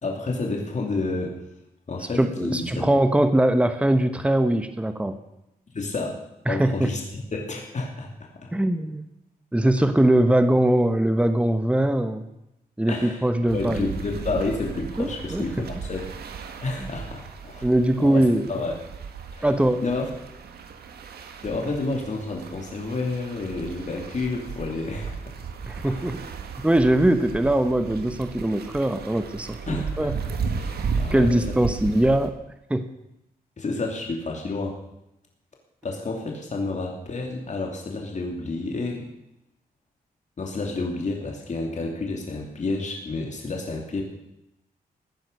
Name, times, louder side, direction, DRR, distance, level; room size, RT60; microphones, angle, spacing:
voice 1, 0.0-1.4 1.9-2.9 5.7-6.2 6.5-8.5 12.9-13.3 13.5-16.1 16.6-17.7 18.0-18.7 19.3-19.5 19.8-20.1 21.4-25.3 25.9-26.0 29.7-30.1 30.5-31.3 33.6-34.8 35.8-39.1 40.4-44.0, left 3 dB, 50° left, 0 dB, 2.9 m, -30 dB
voice 2, 2.2-5.2 6.5-6.9 8.5-9.0 9.5-12.3 12.8-13.9 15.0-15.5 16.8-16.9 17.6-18.5 19.4-19.8 25.7-26.2 26.6-30.1 31.1-32.4 32.7-32.9, right 1 dB, 10° right, 9 dB, 1.2 m, -21 dB
sound 1, 13.5-32.3, right 5 dB, 85° right, 1.6 m, -35 dB
16.0 x 9.7 x 6.8 m, 0.86 s
cardioid pair, 75°, 16 cm